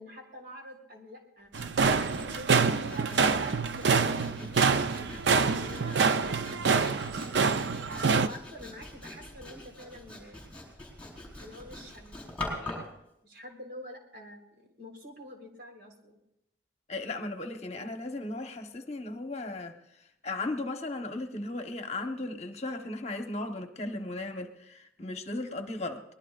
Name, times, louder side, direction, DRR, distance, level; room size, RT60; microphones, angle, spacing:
voice 1, 0.0-10.4 11.4-12.9 13.2-16.2, left 1 dB, 65° right, 3.9 m, -48 dB
Sawing, 1.5-12.9, left 1 dB, 10° left, 4.7 m, -43 dB
sound 1, 1.5-8.3, right 5 dB, 80° right, 0.6 m, -26 dB
voice 2, 16.9-19.8 20.2-26.0, left 2 dB, 35° left, 1.1 m, -36 dB
23.5 x 19.5 x 2.5 m
head